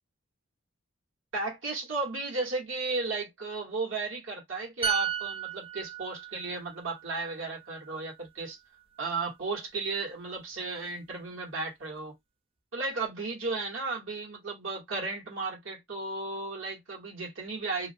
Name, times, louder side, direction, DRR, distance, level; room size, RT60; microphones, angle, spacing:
voice 1, 1.3-8.6 9.0-12.2 12.7-17.9, right 3 dB, 80° right, 1.3 m, -34 dB
sound 1, 4.8-8.4 8.7-9.0, right 9 dB, 30° right, 0.4 m, -35 dB
2.4 x 2.1 x 2.6 m
head